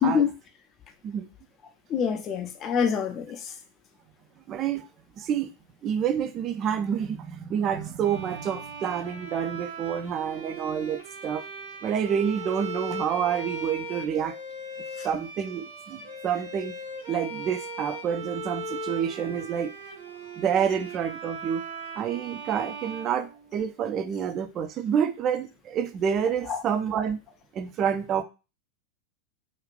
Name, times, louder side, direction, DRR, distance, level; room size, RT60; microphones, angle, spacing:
voice 1, 0.0-0.3 1.9-3.5 15.0-15.1 26.5-26.6, left 7 dB, 30° left, 0.5 m, -26 dB
voice 2, 4.5-4.9 5.2-5.5 5.8-11.4 11.8-14.4 15.0-16.7 17.1-19.7 20.4-21.6 22.0-27.2 27.5-28.2, right 8 dB, 30° right, 0.4 m, -28 dB
Bowed string instrument, 8.0-23.9, right 2 dB, 55° right, 0.8 m, -39 dB
2.5 x 2.3 x 3.3 m
figure-of-eight pair, 90°, 0 cm